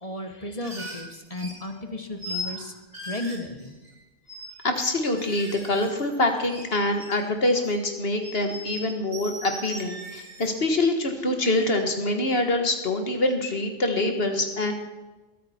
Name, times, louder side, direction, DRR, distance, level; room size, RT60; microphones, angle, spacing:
voice 1, 0.0-2.7 3.1-3.7, left 1 dB, 30° left, 6 dB, 1.2 m, -34 dB
sound 1, 0.6-1.7 2.2-2.6 2.9-4.0 4.3-4.5 4.8-6.7 6.9-7.8 8.2-10.5, left 1 dB, 70° right, 3.3 m, -39 dB
voice 2, 2.4-2.7 4.6-14.7, left 2 dB, 50° left, 5 dB, 1.7 m, -25 dB
21.5 x 8.8 x 4.3 m, 1.2 s
omnidirectional pair, 1.3 m